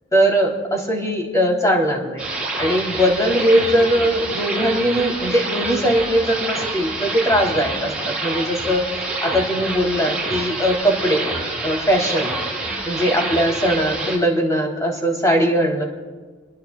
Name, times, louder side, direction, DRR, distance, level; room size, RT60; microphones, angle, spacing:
voice 1, 0.1-2.2 2.6-8.9 9.2-11.2 11.6-12.3 12.8-15.8, equal, 15° left, 0 dB, 3.3 m, -20 dB
sound 1, 2.2-14.2, right 2 dB, 5° right, 5.4 m, -27 dB
29.0 x 21.0 x 2.4 m, 1.4 s
head